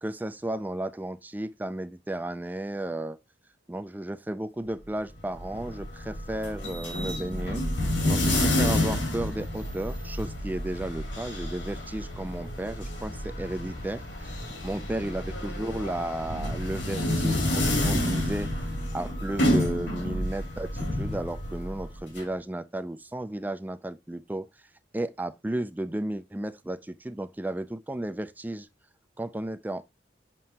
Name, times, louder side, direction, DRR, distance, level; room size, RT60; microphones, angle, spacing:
voice 1, 0.0-3.2 3.7-7.6 8.0-24.7 24.9-28.7 29.2-29.9, right 1 dB, 10° right, 0.3 m, -34 dB
sound 1, 5.2-22.2, left 1 dB, 70° left, 2.8 m, -29 dB
7.5 x 5.4 x 2.8 m
head